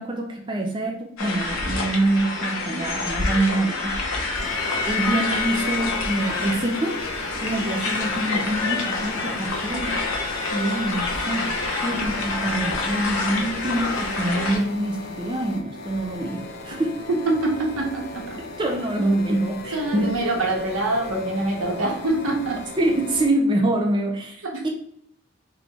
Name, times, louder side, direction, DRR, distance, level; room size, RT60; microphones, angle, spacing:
voice 1, 0.0-4.1 4.9-7.0 7.4-10.0 10.5-11.5 11.8-17.0 18.6-20.2 22.8-24.4 24.6-24.7, right 1 dB, 20° right, 1 dB, 0.4 m, -25 dB
sound 1, 1.2-14.6, left 3 dB, 85° left, 0.9 m, -27 dB
sound 2, 4.3-23.3, left 2 dB, 50° left, 0.6 m, -38 dB
voice 2, 17.3-18.4 19.7-22.6 24.4-24.7, right 2 dB, 85° right, 0 dB, 1.1 m, -25 dB
3.8 x 3.4 x 2.9 m, 0.68 s
head